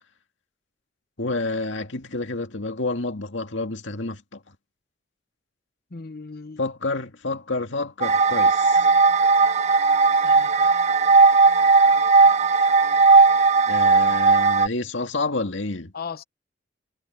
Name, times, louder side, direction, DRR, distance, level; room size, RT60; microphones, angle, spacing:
voice 1, 1.2-4.4 6.6-8.9 13.7-15.9, left 3 dB, 75° left, 2.2 m, -29 dB
voice 2, 5.9-6.6 10.2-10.7 15.9-16.2, left 5 dB, 55° left, 1.0 m, -37 dB
sound 1, 8.0-14.7, right 4 dB, 35° right, 0.6 m, -17 dB
head